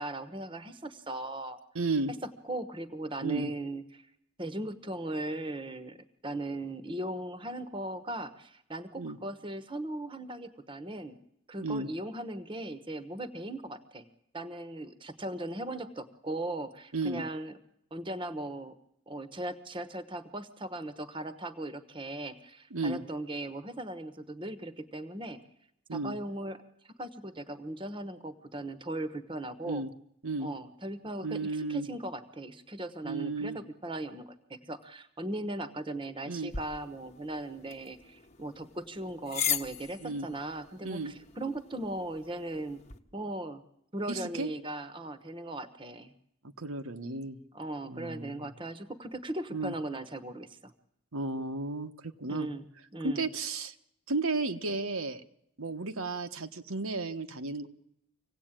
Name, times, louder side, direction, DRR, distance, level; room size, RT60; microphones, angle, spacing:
voice 1, 0.0-1.6 2.2-4.0 4.4-11.2 11.5-14.1 14.3-17.5 17.9-18.7 19.1-25.4 25.9-26.6 27.0-29.8 30.4-42.8 43.1-43.6 43.9-46.1 47.5-50.7 52.3-52.7 52.9-53.3, right 1 dB, 25° right, 12 dB, 1.1 m, -38 dB
voice 2, 1.7-2.1 3.2-3.5 8.9-9.2 11.6-11.9 16.9-17.2 22.7-23.0 25.9-26.1 29.6-29.9 30.2-30.5 31.2-31.9 33.0-33.6 36.2-36.5 40.0-40.3 40.8-41.1 44.1-44.5 46.6-47.4 47.9-48.4 49.5-49.7 51.1-52.5 53.0-53.7 54.1-55.2 55.6-57.7, right 3 dB, 80° right, 7 dB, 1.3 m, -33 dB
sound 1, 36.5-43.0, left 8 dB, 30° left, 1.1 m, -39 dB
25.5 x 17.5 x 9.0 m, 0.78 s
head